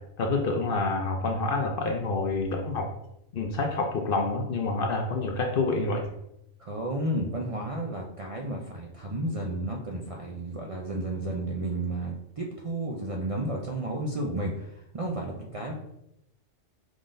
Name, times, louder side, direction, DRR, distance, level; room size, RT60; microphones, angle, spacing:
voice 1, 0.2-2.9 3.3-6.1, left 3 dB, 55° left, 3 dB, 0.7 m, -27 dB
voice 2, 6.6-15.7, right 1 dB, 55° right, -1 dB, 0.3 m, -32 dB
5.0 x 3.7 x 2.5 m, 0.81 s
omnidirectional pair, 1.3 m